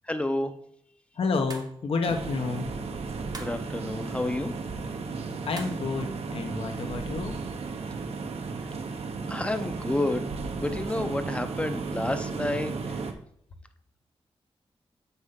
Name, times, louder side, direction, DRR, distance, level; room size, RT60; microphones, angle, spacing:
voice 1, 0.0-0.5 3.4-4.5 9.3-10.3 10.6-13.1, left 1 dB, 10° left, 8 dB, 0.7 m, -30 dB
voice 2, 1.2-2.7 5.4-7.4, left 4 dB, 65° left, 4 dB, 1.0 m, -30 dB
sound 1, 1.5-1.8 3.3-3.6 5.5-5.9, right 3 dB, 40° right, 0.9 m, -42 dB
sound 2, 2.1-13.1, right 4 dB, 75° right, 1.0 m, -34 dB
8.1 x 6.7 x 3.7 m, 0.69 s
wide cardioid pair, 170°, 11 cm